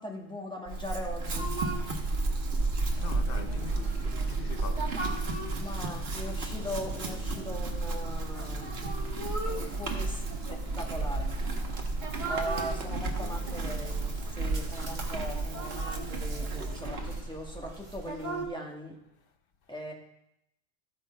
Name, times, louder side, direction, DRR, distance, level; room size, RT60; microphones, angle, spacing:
voice 1, 0.0-1.5 5.6-8.7 9.4-10.2 10.5-11.3 12.3-19.0 19.7-19.9, equal, 5° left, 1.5 m, -40 dB
Chewing mastication / Livestock farm animals working animals, 0.7-17.2, right 3 dB, 75° right, 1.4 m, -33 dB
sound 1, 1.4-18.5, right 2 dB, 45° right, 1.6 m, -37 dB
voice 2, 3.0-4.8 12.9-13.7, left 6 dB, 65° left, 0.9 m, -43 dB
14.0 x 6.0 x 4.4 m
omnidirectional pair, 1.1 m